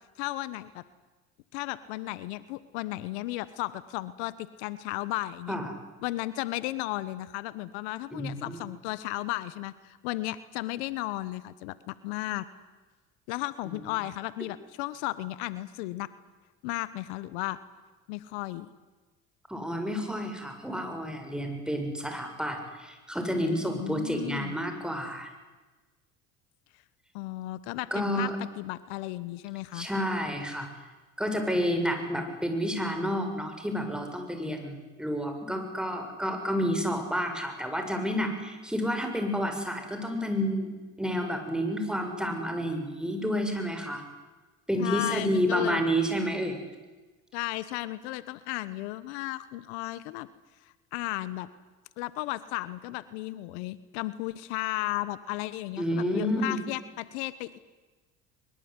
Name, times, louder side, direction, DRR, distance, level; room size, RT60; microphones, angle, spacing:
voice 1, 0.2-0.8 1.5-5.6 6.0-12.4 13.3-16.1 16.6-17.6 18.1-18.7 23.7-24.6 27.1-29.9 44.8-45.8 47.3-50.3 50.6-51.5 52.0-57.6, left 17 dB, 80° left, 16 dB, 1.1 m, -34 dB
voice 2, 8.1-8.6 19.5-25.3 27.9-28.3 29.7-30.7 31.2-40.7 41.0-44.0 44.7-46.6 55.8-56.6, equal, ahead, 5 dB, 7.3 m, -30 dB
22.5 x 22.5 x 9.7 m, 1.2 s
hypercardioid pair, 75°, 33 cm